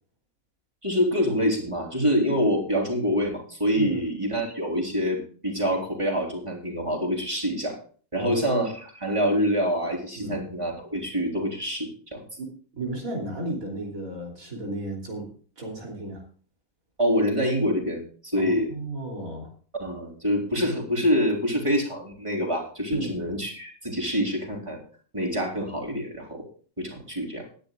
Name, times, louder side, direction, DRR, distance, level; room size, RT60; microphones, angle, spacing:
voice 1, 0.8-7.8 8.1-12.3 17.0-18.7 19.8-24.8 25.1-26.4 26.8-27.5, equal, 20° right, 0 dB, 3.6 m, -26 dB
voice 2, 12.4-15.3 15.6-16.2 18.4-19.5 22.9-23.2, right 1 dB, 80° right, -1 dB, 3.7 m, -34 dB
19.5 x 10.5 x 2.4 m, 0.41 s
omnidirectional pair, 1.4 m